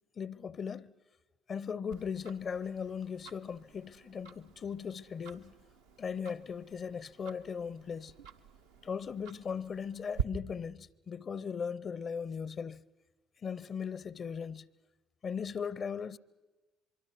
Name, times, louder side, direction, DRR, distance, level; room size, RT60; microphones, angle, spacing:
voice 1, 0.2-0.9 1.5-5.5 6.0-8.1 8.8-12.8 13.4-14.7 15.2-16.2, left 6 dB, 45° left, 0.6 m, -38 dB
Tick-tock, 1.9-10.2, right 7 dB, 80° right, 1.0 m, -45 dB
24.5 x 24.0 x 6.2 m
figure-of-eight pair, 50°, 0 cm